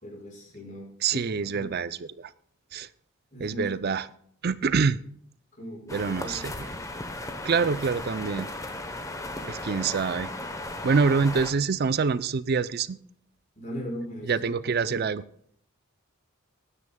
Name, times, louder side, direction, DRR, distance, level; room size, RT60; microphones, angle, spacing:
voice 1, 0.0-1.7 3.3-3.7 5.5-6.9 13.6-14.9, equal, 40° left, -1 dB, 5.4 m, -39 dB
voice 2, 1.0-2.3 2.7-2.9 3.4-4.1 4.4-5.0 5.9-6.5 7.4-8.5 9.4-10.3 10.8-13.0 14.3-15.2, right 5 dB, 50° right, 16 dB, 0.5 m, -26 dB
sound 1, 5.9-11.5, left 1 dB, 15° left, 1.0 m, -36 dB
19.5 x 9.9 x 2.3 m, 0.64 s
head